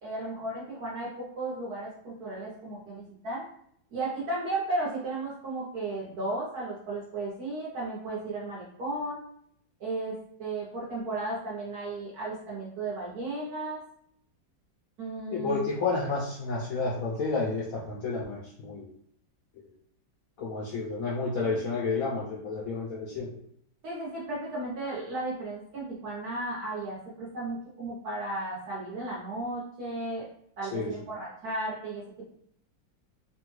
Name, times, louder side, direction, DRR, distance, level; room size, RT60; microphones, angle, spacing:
voice 1, 0.0-3.4 3.9-9.2 9.8-13.8 15.0-15.7 23.8-30.3 30.6-32.0, right 2 dB, 65° right, -5 dB, 1.1 m, -34 dB
voice 2, 15.3-18.9 20.4-23.4 30.7-30.9, left 3 dB, 75° left, -4 dB, 0.7 m, -30 dB
3.3 x 2.2 x 3.0 m, 0.68 s
omnidirectional pair, 2.0 m